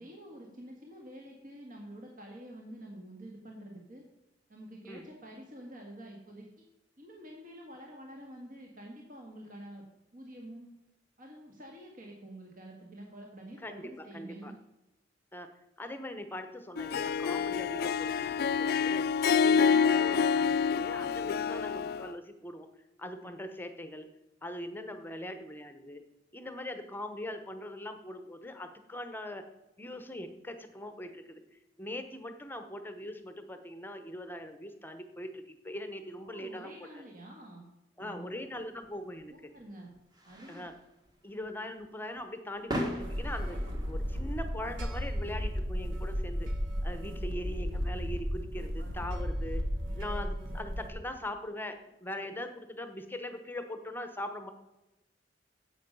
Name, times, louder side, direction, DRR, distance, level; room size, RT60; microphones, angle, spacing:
voice 1, 0.0-4.0 4.5-6.7 7.0-9.8 10.1-10.7 11.2-14.5 36.2-37.7 38.0-38.3 39.3-39.9 40.2-40.6, right 1 dB, 50° right, 0 dB, 1.7 m, -48 dB
voice 2, 13.6-14.5 15.3-15.5 15.8-19.0 19.4-22.7 23.0-24.1 24.4-26.0 26.3-29.4 29.8-37.0 38.0-39.3 40.5-40.7 41.2-43.6 43.8-46.5 46.8-49.6 49.9-54.5, left 1 dB, 10° left, 8 dB, 0.8 m, -41 dB
Harp, 16.8-22.1, left 6 dB, 55° left, 0.4 m, -27 dB
sound 1, 38.8-50.1, equal, 25° right, 1.5 m, -44 dB
sound 2, 43.0-50.9, equal, 90° right, 1.4 m, -34 dB
10.5 x 8.0 x 5.4 m, 1.0 s
head